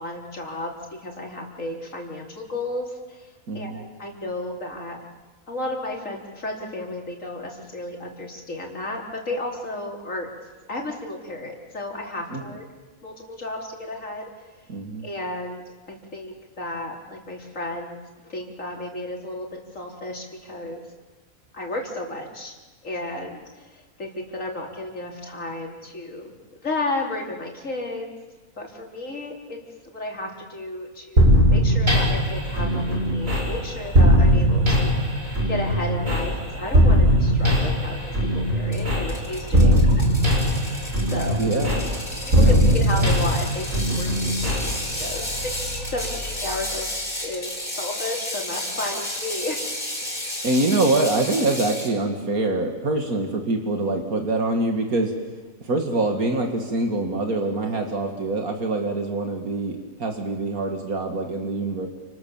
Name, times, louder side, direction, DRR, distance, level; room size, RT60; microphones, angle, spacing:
voice 1, 0.0-5.0 5.5-10.3 10.7-12.6 13.0-14.3 15.0-15.6 15.9-18.0 18.2-20.8 21.5-22.6 22.8-26.3 26.6-28.1 28.6-29.6 29.9-34.9 35.5-40.1 41.1-41.4 42.2-44.4 44.9-49.7, left 2 dB, 60° left, 0 dB, 4.4 m, -33 dB
voice 2, 3.5-3.8 12.3-12.4 14.7-15.1 34.0-34.3 39.5-39.9 41.4-41.9 42.3-42.7 43.0-43.1 50.4-55.1 55.6-61.9, right 2 dB, 85° right, 3 dB, 2.7 m, -25 dB
sound 1, 31.2-46.8, equal, 65° right, 8.4 m, -20 dB
Ratchet pawl, 38.7-51.9, left 1 dB, 30° left, 5.5 m, -32 dB
29.5 x 27.0 x 7.3 m, 1.3 s
omnidirectional pair, 1.5 m